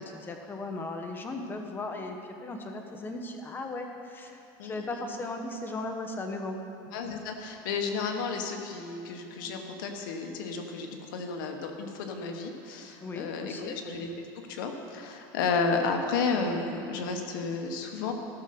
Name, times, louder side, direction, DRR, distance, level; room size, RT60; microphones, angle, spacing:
voice 1, 0.0-6.6 13.0-13.7, left 2 dB, 20° left, 4 dB, 1.0 m, -37 dB
voice 2, 4.6-5.0 6.9-14.1 14.5-18.1, left 4 dB, 85° left, 4 dB, 1.3 m, -32 dB
14.0 x 6.5 x 6.0 m, 2.7 s
supercardioid pair, 140°, 11 cm